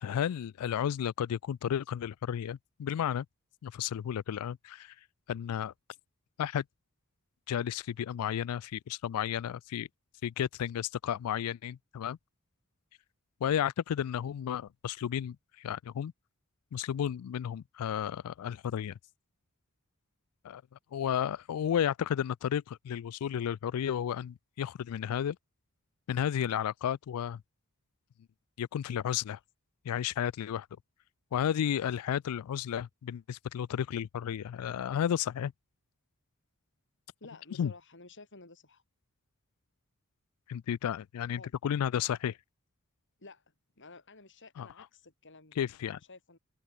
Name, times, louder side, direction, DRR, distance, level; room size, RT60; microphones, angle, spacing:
voice 1, 0.0-3.3 3.6-4.9 5.3-5.7 6.4-6.6 7.5-9.9 10.2-12.2 13.4-16.1 16.7-18.9 20.4-20.6 20.9-25.4 26.1-27.4 28.6-29.4 29.9-30.7 31.3-35.5 37.6-37.7 40.5-42.4 44.6-44.7 45.6-46.0, left 9 dB, 75° left, 0.3 m, -32 dB
voice 2, 37.2-38.8 41.3-41.5 43.2-45.7 45.9-46.4, left 3 dB, 55° left, 6.5 m, -53 dB
head